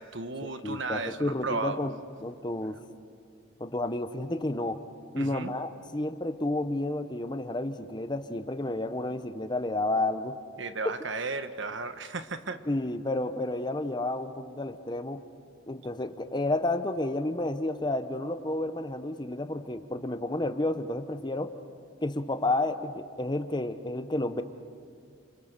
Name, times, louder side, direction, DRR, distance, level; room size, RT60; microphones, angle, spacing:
voice 1, 0.0-1.8 5.2-5.5 10.6-12.6, right 3 dB, 60° right, 9 dB, 1.3 m, -34 dB
voice 2, 0.6-1.9 2.2-2.8 3.6-4.8 5.1-10.4 12.7-15.2 15.7-21.5 22.0-24.4, left 2 dB, 20° left, 10 dB, 0.9 m, -31 dB
30.0 x 27.0 x 6.8 m, 2.2 s
head